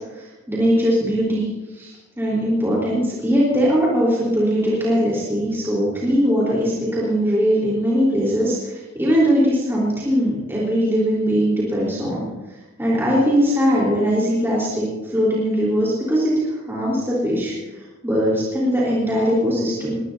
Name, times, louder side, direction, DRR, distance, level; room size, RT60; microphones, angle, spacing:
voice 1, 0.0-12.3 12.8-17.6 18.0-20.0, equal, 10° right, -6 dB, 4.5 m, -20 dB
23.0 x 19.5 x 2.9 m, 1.2 s
head